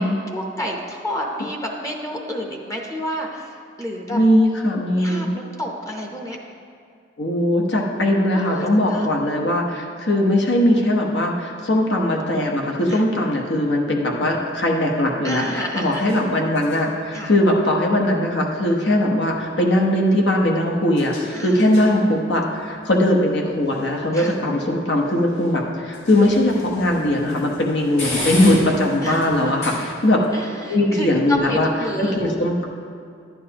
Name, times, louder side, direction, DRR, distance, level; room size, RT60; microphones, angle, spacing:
voice 1, 0.3-4.2 5.0-6.4 8.3-9.1 12.9-13.0 15.2-16.1 17.1-17.3 21.3-21.6 24.1-24.3 29.0-29.5 30.3-32.1, equal, 20° left, 0 dB, 0.8 m, -30 dB
voice 2, 4.1-5.3 7.2-30.2 30.7-31.7 32.0-32.7, left 1 dB, 65° left, -1 dB, 1.0 m, -20 dB
sound 1, 12.8-30.3, left 1 dB, 85° left, 2.4 m, -37 dB
11.0 x 9.2 x 2.9 m, 2.3 s
head